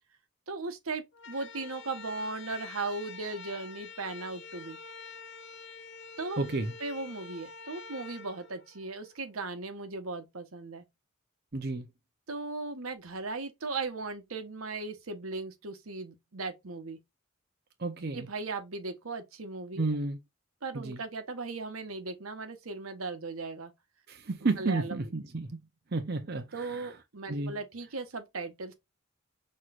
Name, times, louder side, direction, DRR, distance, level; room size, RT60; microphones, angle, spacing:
voice 1, 0.5-4.8 6.2-6.4 6.8-10.8 12.3-17.0 18.1-19.9 20.6-23.7 24.6-25.1 26.5-28.7, right 3 dB, 80° right, 1.0 m, -37 dB
sound 1, 1.1-9.3, left 5 dB, 55° left, 0.6 m, -47 dB
voice 2, 6.4-6.7 11.5-11.9 17.8-18.3 19.8-20.2 20.7-21.0 24.1-25.6 25.9-26.9 27.3-27.6, right 3 dB, 45° right, 0.6 m, -32 dB
5.9 x 3.1 x 2.4 m
head